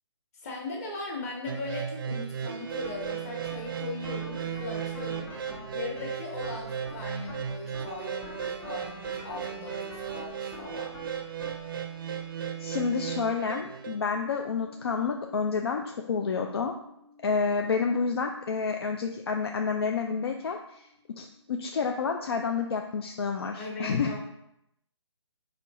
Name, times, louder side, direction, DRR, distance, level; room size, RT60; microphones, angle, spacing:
voice 1, 0.3-5.3 5.7-10.9 23.6-24.2, left 2 dB, 30° left, -2 dB, 1.1 m, -38 dB
sound 1, 1.5-14.0, right 8 dB, 50° right, 0.5 m, -36 dB
sound 2, 2.7-19.9, equal, 5° left, 0.8 m, -49 dB
voice 2, 12.6-16.7 17.2-20.8 21.2-24.1, left 5 dB, 60° left, 3 dB, 0.4 m, -29 dB
4.3 x 2.7 x 4.1 m, 0.79 s
hypercardioid pair, 150°, 15 cm